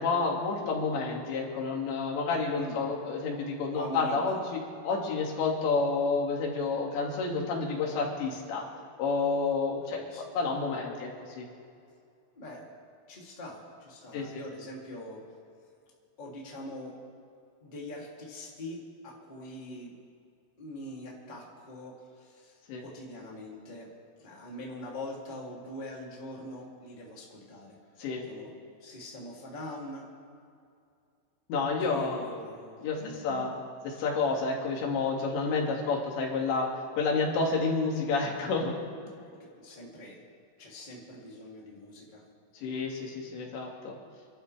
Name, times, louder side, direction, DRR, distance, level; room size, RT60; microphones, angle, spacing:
voice 1, 0.0-8.6 9.0-10.0 10.3-11.1 11.4-11.5 14.1-14.4 22.7-22.8 28.0-28.3 31.5-32.2 32.8-33.5 34.0-36.7 36.9-38.7 42.6-43.9, left 4 dB, 90° left, -1 dB, 4.4 m, -29 dB
voice 2, 2.5-2.9 3.7-4.4 9.8-10.2 12.3-12.7 13.1-15.2 16.2-17.0 17.6-20.0 20.6-28.5 28.8-30.1 31.8-33.5 35.4-35.7 39.2-40.2 40.6-42.2, left 1 dB, 15° left, -4 dB, 1.9 m, -43 dB
28.5 x 12.5 x 3.3 m, 2.4 s
omnidirectional pair, 5.0 m